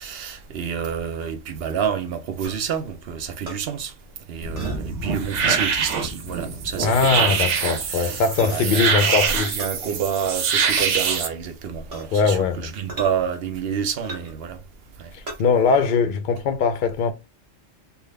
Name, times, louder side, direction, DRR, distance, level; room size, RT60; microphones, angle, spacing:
voice 1, 0.0-3.9 4.3-7.5 7.8-14.6 15.0-15.1, right 7 dB, 65° right, 0.8 m, -29 dB
sound 1, 2.4-2.6 3.5-3.6 4.6-4.8 5.6-5.7 7.0-7.3 8.4-8.6 9.6-9.8 10.8-10.9 11.9-12.2 12.9-13.1 14.0-14.4 15.3-15.4, right 1 dB, 35° right, 1.2 m, -36 dB
sound 2, 4.4-11.3, right 6 dB, 90° right, 1.1 m, -24 dB
voice 2, 6.8-9.6 12.1-12.7 15.1-17.1, left 5 dB, 60° left, 0.6 m, -21 dB
3.5 x 2.3 x 3.2 m
omnidirectional pair, 1.2 m